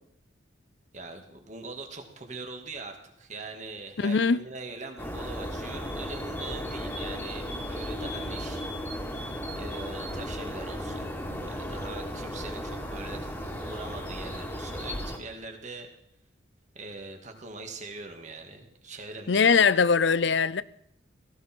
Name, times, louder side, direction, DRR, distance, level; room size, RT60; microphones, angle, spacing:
voice 1, 0.9-9.3 9.5-15.9 16.7-19.8, right 3 dB, 40° right, 2.2 m, -42 dB
voice 2, 4.0-4.4 19.3-20.6, left 5 dB, 65° left, 0.6 m, -21 dB
sound 1, 5.0-15.2, equal, 10° left, 2.3 m, -35 dB
18.0 x 15.0 x 4.6 m
head